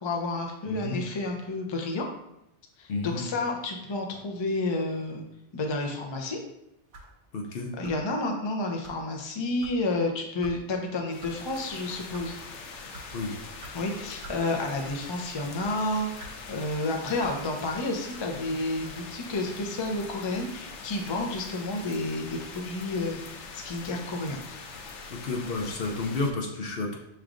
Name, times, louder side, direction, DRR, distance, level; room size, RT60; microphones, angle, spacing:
voice 1, 0.0-2.1 2.8-5.2 5.5-6.4 7.8-12.3 13.7-16.1 16.5-24.4, left 2 dB, 35° left, 2 dB, 0.4 m, -30 dB
voice 2, 0.7-1.0 2.9-3.2 7.3-7.7 13.1-13.4 25.1-27.0, left 3 dB, 60° left, 1 dB, 0.8 m, -31 dB
sound 1, 6.9-7.2 7.8-8.1 8.8-9.0 9.6-9.8 10.4-10.6 11.2-11.3 12.0-12.3 12.9-13.1 13.6-13.7 14.2-14.4 14.8-15.1 15.6-15.7 16.2-16.4 17.2-17.4, right 2 dB, 65° right, 1.0 m, -45 dB
sound 2, 11.1-26.3, left 4 dB, 85° left, 0.9 m, -43 dB
6.0 x 3.2 x 2.5 m, 0.83 s
omnidirectional pair, 1.2 m